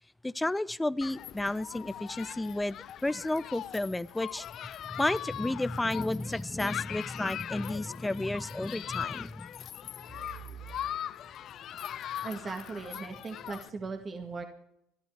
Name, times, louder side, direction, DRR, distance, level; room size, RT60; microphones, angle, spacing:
voice 1, 0.2-4.5 4.9-9.5, left 2 dB, 10° left, 17 dB, 0.7 m, -32 dB
Human group actions, 1.0-13.7, left 10 dB, 55° left, 0.6 m, -40 dB
voice 2, 12.2-14.5, right 4 dB, 30° right, 4 dB, 2.0 m, -38 dB
30.0 x 13.0 x 3.5 m, 0.79 s
supercardioid pair, 90°, 0 cm